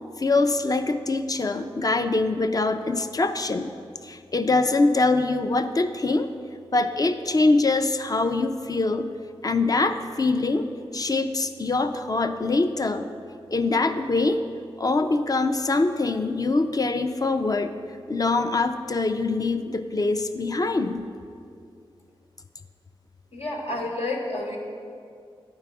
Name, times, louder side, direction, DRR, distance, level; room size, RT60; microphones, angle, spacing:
voice 1, 0.2-3.7 4.0-6.3 6.7-9.1 9.4-10.7 10.9-13.1 13.5-14.4 14.8-17.7 18.1-21.1, left 3 dB, 40° left, 8 dB, 0.4 m, -23 dB
voice 2, 23.3-24.6, left 2 dB, 80° left, -1 dB, 1.3 m, -30 dB
10.5 x 4.7 x 4.8 m, 2.4 s
wide cardioid pair, 65°, 10 cm